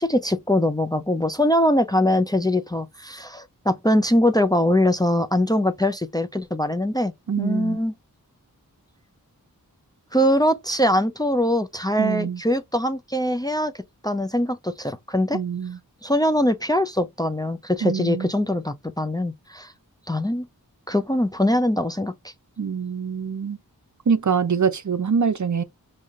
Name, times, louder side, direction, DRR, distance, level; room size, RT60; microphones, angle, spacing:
voice 1, 0.0-7.9 10.1-15.4 16.0-19.7 20.1-20.5 20.9-22.3, left 1 dB, 10° left, 0.5 m, -22 dB
voice 2, 7.3-7.8 12.0-12.4 15.3-15.8 17.8-18.3 22.6-23.6 24.1-25.6, right 6 dB, 50° right, 0.6 m, -24 dB
4.9 x 2.7 x 2.4 m
wide cardioid pair, 50°, 37 cm